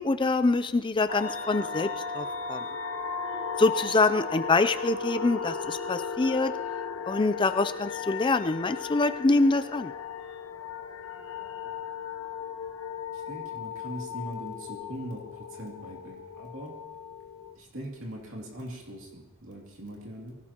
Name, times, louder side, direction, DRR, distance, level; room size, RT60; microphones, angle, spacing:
voice 1, 0.0-2.6 3.6-6.5 7.1-9.9, left 3 dB, 20° left, 11 dB, 0.4 m, -25 dB
sound 1, 1.1-17.6, left 6 dB, 65° left, 0.9 m, -36 dB
voice 2, 13.1-16.7 17.6-20.4, right 1 dB, 60° right, -1 dB, 2.6 m, -41 dB
24.0 x 17.5 x 2.9 m, 1.1 s
head